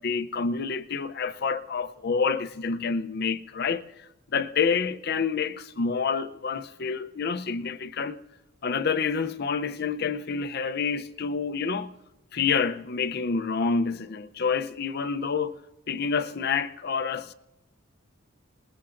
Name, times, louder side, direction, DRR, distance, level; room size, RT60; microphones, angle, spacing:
voice 1, 0.0-3.8 4.3-8.2 8.6-11.9 12.3-15.6 15.9-17.3, left 5 dB, 50° left, 0.5 m, -28 dB
28.0 x 20.5 x 2.5 m
head